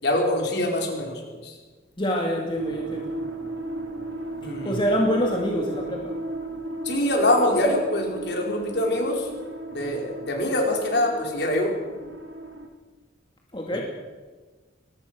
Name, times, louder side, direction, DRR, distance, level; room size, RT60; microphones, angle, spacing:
voice 1, 0.0-1.5 4.4-4.7 6.8-9.3 9.7-11.7 13.7-13.8, left 1 dB, 55° left, 1 dB, 4.9 m, -24 dB
voice 2, 2.0-3.1 4.6-6.1 13.5-13.8, equal, 25° left, -1 dB, 2.6 m, -25 dB
sound 1, 2.5-12.7, right 2 dB, 90° right, 3.4 m, -35 dB
23.0 x 19.0 x 6.3 m, 1.3 s
head